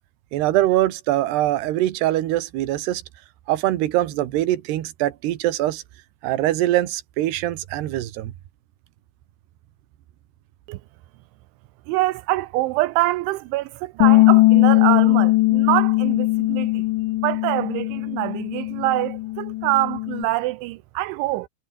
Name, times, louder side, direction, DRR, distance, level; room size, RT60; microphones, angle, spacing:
voice 1, 0.3-3.0 3.5-5.8 6.2-8.3, right 14 dB, 70° right, 3.4 m, -23 dB
voice 2, 11.9-16.8 17.2-21.5, right 18 dB, 85° right, 3.2 m, -25 dB
Bass guitar, 14.0-20.3, left 19 dB, 85° left, 3.1 m, -19 dB
omnidirectional pair, 5.3 m